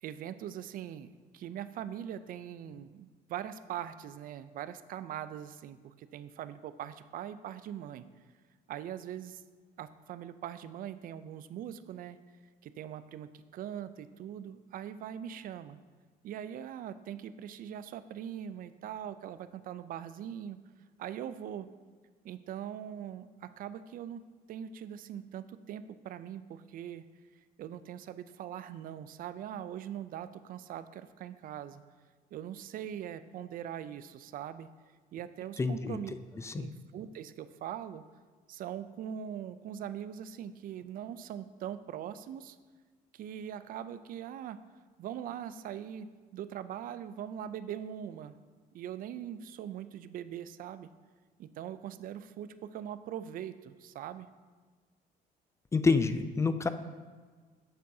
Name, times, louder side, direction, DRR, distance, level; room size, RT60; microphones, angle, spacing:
voice 1, 0.0-1.1 1.3-8.1 8.7-9.4 9.8-12.2 12.6-15.8 16.2-20.6 21.0-21.7 22.2-27.0 27.6-31.8 32.3-34.7 35.1-36.1 36.5-38.0 38.5-42.6 43.1-44.6 45.0-48.3 48.7-50.9 51.4-54.3, right 10 dB, 55° right, 13 dB, 0.4 m, -41 dB
voice 2, 35.6-36.0 36.4-36.7 55.7-56.7, left 4 dB, 15° left, 11 dB, 0.3 m, -27 dB
7.6 x 6.9 x 2.7 m, 1.5 s
cardioid pair, 110°, 17 cm